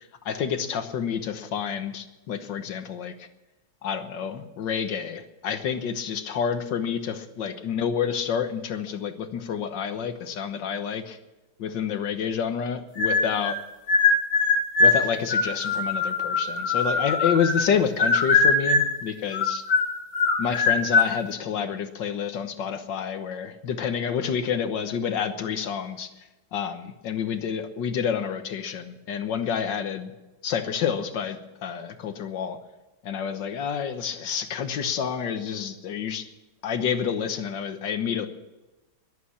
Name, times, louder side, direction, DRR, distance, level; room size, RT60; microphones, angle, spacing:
voice 1, 0.3-3.1 3.8-11.2 11.6-13.6 14.8-19.6 20.4-26.1 26.5-30.1 30.4-32.6 33.0-36.2 36.6-38.3, left 7 dB, 75° left, 9 dB, 1.8 m, -28 dB
sound 1, 13.0-13.6 13.9-17.7 18.0-19.0 19.3-21.1, left 4 dB, 90° left, 2.9 m, -22 dB
21.0 x 8.6 x 7.2 m, 1.1 s
omnidirectional pair, 2.0 m